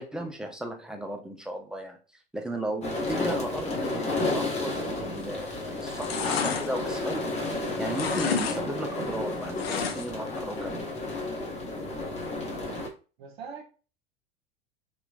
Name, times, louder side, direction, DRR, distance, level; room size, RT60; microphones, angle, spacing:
voice 1, 0.0-2.0 2.3-10.7, right 1 dB, ahead, 3 dB, 0.4 m, -35 dB
sound 1, 2.8-12.9, left 2 dB, 20° left, 0.9 m, -32 dB
sound 2, 5.2-5.5 5.8-7.6 7.9-8.6 8.9-10.3 10.6-10.7, left 7 dB, 80° left, 0.5 m, -31 dB
voice 2, 11.9-12.2 13.2-13.6, right 6 dB, 55° right, -2 dB, 0.9 m, -43 dB
2.9 x 2.2 x 2.4 m, 0.35 s
figure-of-eight pair, 85°, 30 cm